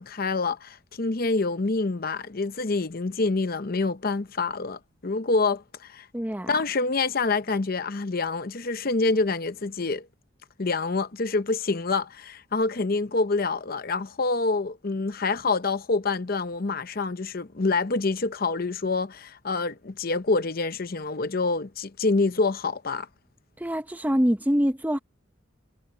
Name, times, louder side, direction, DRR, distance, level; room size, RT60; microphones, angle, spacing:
voice 1, 0.0-6.1 6.5-10.1 10.6-23.1, left 3 dB, 45° left, 0.7 m, -26 dB
voice 2, 6.1-6.5 23.6-25.0, equal, 10° right, 0.7 m, -24 dB
head